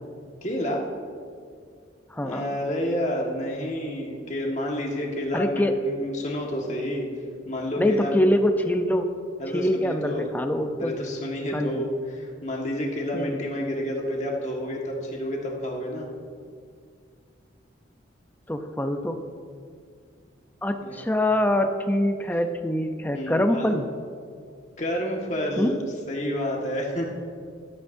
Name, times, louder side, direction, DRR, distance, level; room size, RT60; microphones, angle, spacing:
voice 1, 0.4-0.9 2.2-7.1 7.5-8.2 9.4-10.2 10.8-16.1 20.8-21.0 23.1-23.7 24.8-25.8 26.1-27.1, equal, 40° left, -1 dB, 1.6 m, -29 dB
voice 2, 2.1-2.5 5.3-5.8 7.8-9.1 9.5-11.0 11.5-11.8 13.1-13.4 18.5-19.2 20.6-23.9 25.6-25.7, left 1 dB, 10° left, 6 dB, 0.6 m, -24 dB
14.5 x 13.0 x 2.7 m, 2.2 s
head